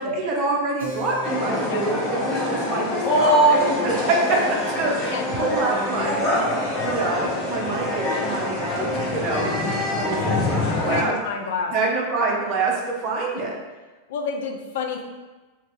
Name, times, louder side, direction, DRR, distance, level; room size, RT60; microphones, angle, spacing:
voice 1, 0.0-6.4 6.8-9.5 9.9-11.2 11.7-13.5, right 3 dB, 35° right, -2 dB, 0.7 m, -26 dB
Keyboard (musical), 0.8-6.9, left 2 dB, 65° right, 0.8 m, -41 dB
sound 1, 1.2-11.0, left 1 dB, 35° left, 0.8 m, -24 dB
voice 2, 10.6-11.7 14.1-15.0, left 5 dB, 55° left, 3 dB, 0.4 m, -29 dB
2.9 x 2.8 x 3.4 m, 1.2 s
figure-of-eight pair, 90°, 0 cm